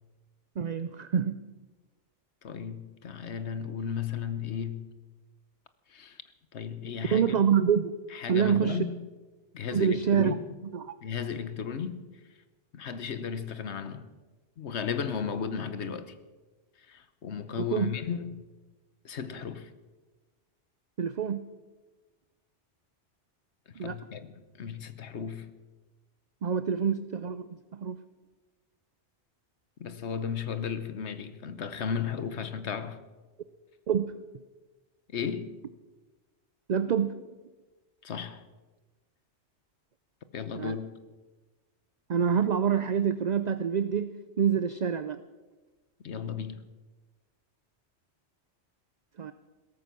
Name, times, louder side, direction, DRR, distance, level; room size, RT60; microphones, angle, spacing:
voice 1, 0.6-1.5 7.1-7.9 8.3-8.8 9.7-10.3 10.7-10.9 17.7-17.9 21.0-21.4 23.8-23.9 26.4-28.0 33.9-34.2 36.7-37.3 40.6-40.7 42.1-45.2 49.2-49.3, right 7 dB, 50° right, 0.5 m, -26 dB
voice 2, 2.4-4.9 5.9-6.2 6.5-7.4 8.1-9.1 9.5-10.4 11.0-12.1 12.7-14.1 14.6-16.1 16.8-18.4 19.0-19.7 23.7-25.5 29.8-33.0 35.1-35.5 38.0-38.4 40.3-40.9 46.0-46.6, left 7 dB, 70° left, 1.3 m, -35 dB
17.0 x 14.0 x 6.1 m
omnidirectional pair, 1.2 m